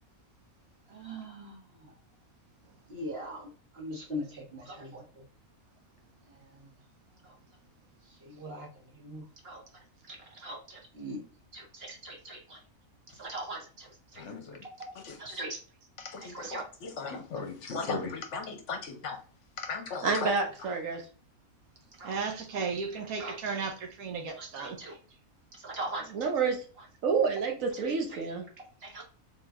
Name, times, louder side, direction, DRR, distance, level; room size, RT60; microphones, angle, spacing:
voice 1, 0.9-1.6 2.9-3.5 3.8-5.0 8.2-8.7 9.0-9.6 10.1-11.2 11.5-12.6 13.2-13.9 14.1-14.3 14.6-15.6 16.2-16.6 17.1-17.2 22.0-22.2 22.5-22.6 23.2-23.6 24.6-24.9 25.6-26.3 28.6-29.0, right 1 dB, 45° right, 1.6 m, -41 dB
voice 2, 14.2-14.6 14.9-15.2 16.0-19.2 19.6-20.3, left 4 dB, 60° left, 1.0 m, -37 dB
voice 3, 20.0-21.0 26.1-26.6 27.0-28.4, right 5 dB, 70° right, 1.3 m, -28 dB
voice 4, 22.0-24.8, right 5 dB, 85° right, 1.3 m, -35 dB
4.3 x 3.5 x 2.4 m
omnidirectional pair, 1.5 m